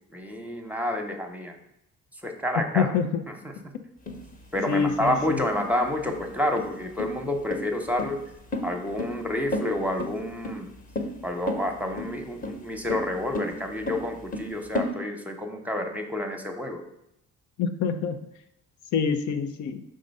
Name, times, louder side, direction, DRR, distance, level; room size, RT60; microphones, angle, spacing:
voice 1, 0.1-1.6 2.2-2.9 3.3-3.5 4.5-8.2 8.6-10.7 11.2-16.8, left 1 dB, 5° right, 4 dB, 0.9 m, -29 dB
voice 2, 2.7-3.2 4.7-5.4 17.6-18.2 18.9-19.8, left 6 dB, 75° left, 8 dB, 0.6 m, -26 dB
sound 1, 4.1-14.9, left 1 dB, 25° left, 1.0 m, -33 dB
5.3 x 3.8 x 5.3 m, 0.81 s
cardioid pair, 90°, 30 cm